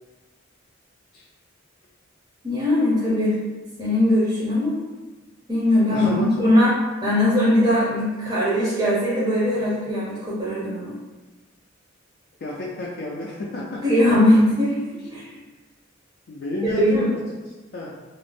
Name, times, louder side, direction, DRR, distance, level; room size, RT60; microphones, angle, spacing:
voice 1, 2.4-3.4 3.8-4.8 5.5-6.8 7.0-11.0 13.8-15.2 16.6-17.2, left 1 dB, 20° right, -8 dB, 0.6 m, -20 dB
voice 2, 5.9-6.3 9.5-9.7 12.4-13.8 14.9-15.0 16.3-16.8 17.7-17.9, left 2 dB, 50° left, -5 dB, 0.4 m, -31 dB
2.4 x 2.0 x 3.2 m, 1.2 s
head